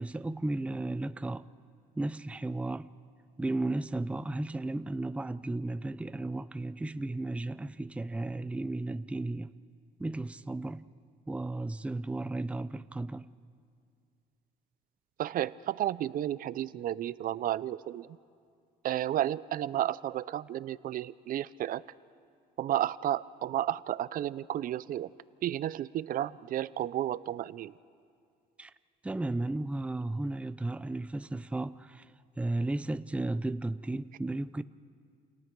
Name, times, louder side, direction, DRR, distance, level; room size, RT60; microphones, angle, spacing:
voice 1, 0.0-1.5 2.0-2.9 3.4-9.5 10.0-10.9 11.3-13.3 28.6-28.7 29.0-32.1 32.4-34.6, right 2 dB, 5° right, 14 dB, 0.5 m, -34 dB
voice 2, 15.2-18.1 18.8-21.8 22.6-25.1 25.4-27.7, right 12 dB, 55° right, 17 dB, 0.5 m, -32 dB
29.0 x 29.0 x 4.7 m, 2.2 s
cardioid pair, 110°, 17 cm